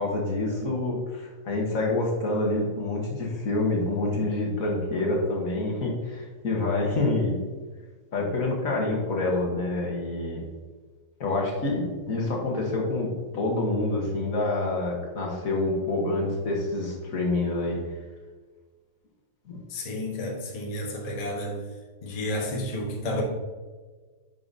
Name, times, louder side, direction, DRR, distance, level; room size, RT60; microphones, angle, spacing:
voice 1, 0.0-7.4 8.1-10.4 11.2-17.8 19.5-19.6, left 2 dB, 50° left, -1 dB, 1.6 m, -27 dB
voice 2, 19.7-21.6 22.0-23.2, left 1 dB, 25° left, -2 dB, 1.0 m, -31 dB
9.4 x 5.4 x 2.7 m, 1.4 s
omnidirectional pair, 1.9 m